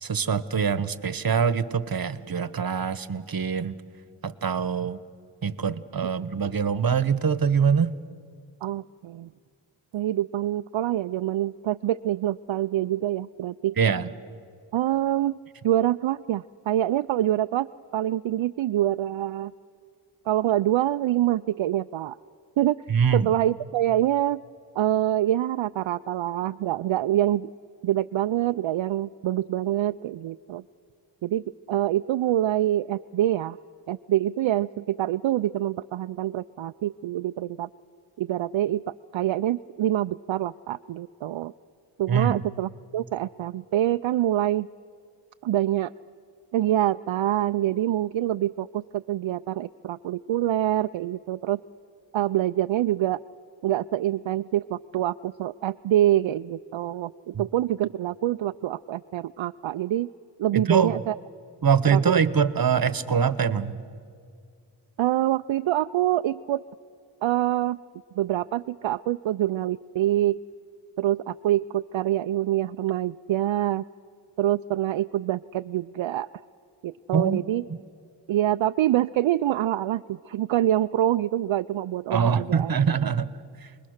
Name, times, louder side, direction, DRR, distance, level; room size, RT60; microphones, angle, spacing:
voice 1, 0.0-3.7 4.2-5.0 5.4-7.9 13.8-14.1 22.9-23.3 42.1-42.4 60.5-60.9 61.6-63.8 77.1-77.4 77.7-77.8 82.1-83.3 83.6-83.7, right 6 dB, 45° right, 14 dB, 1.1 m, -24 dB
voice 2, 8.6-9.3 9.9-13.8 14.7-17.7 17.9-19.5 20.3-22.2 22.6-22.8 23.1-24.4 24.8-27.5 27.8-30.6 31.2-33.6 33.9-37.7 38.2-41.5 42.0-44.7 45.4-45.9 46.5-51.6 52.1-53.2 53.6-60.1 60.4-61.1 61.9-62.2 65.0-66.6 67.2-67.8 68.2-70.4 71.0-73.8 74.4-76.3 76.8-77.6 78.3-82.7, right 13 dB, 70° right, 10 dB, 0.5 m, -25 dB
29.5 x 20.5 x 6.5 m, 2.3 s
cardioid pair, 50°, 48 cm